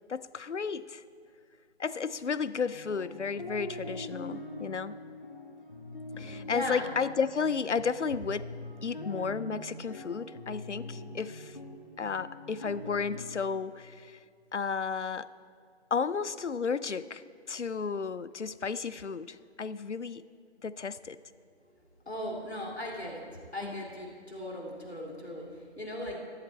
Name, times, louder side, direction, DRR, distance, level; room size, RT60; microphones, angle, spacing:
voice 1, 0.1-1.0 1.8-5.0 6.2-8.6 8.8-11.6 12.0-14.2 14.5-15.3 15.9-20.3 20.6-21.2 23.6-23.8, left 5 dB, 80° left, 16 dB, 0.6 m, -33 dB
sound 1, 2.7-13.3, left 1 dB, 45° left, 1.3 m, -43 dB
voice 2, 6.2-6.9 22.1-23.2 23.5-26.2, left 1 dB, 65° left, -1 dB, 2.7 m, -38 dB
14.5 x 10.5 x 4.3 m, 2.2 s
figure-of-eight pair, 165°, 35 cm